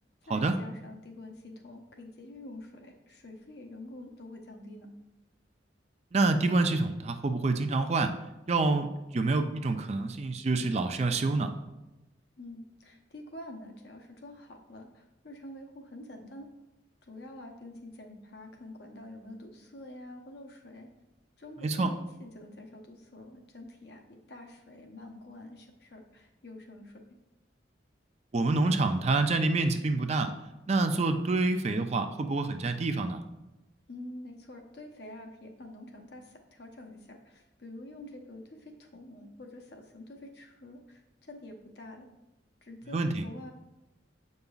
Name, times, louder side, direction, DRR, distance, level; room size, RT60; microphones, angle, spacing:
voice 1, 0.3-4.9 12.4-16.5 17.1-20.9 21.4-27.0 33.9-42.1 42.6-43.5, left 1 dB, 60° left, 2 dB, 0.9 m, -47 dB
voice 2, 6.1-8.1 8.5-11.5 21.6-21.9 28.3-30.3 30.7-33.2 42.9-43.2, right 3 dB, 35° right, 7 dB, 0.4 m, -27 dB
7.9 x 5.3 x 2.4 m, 1.0 s
head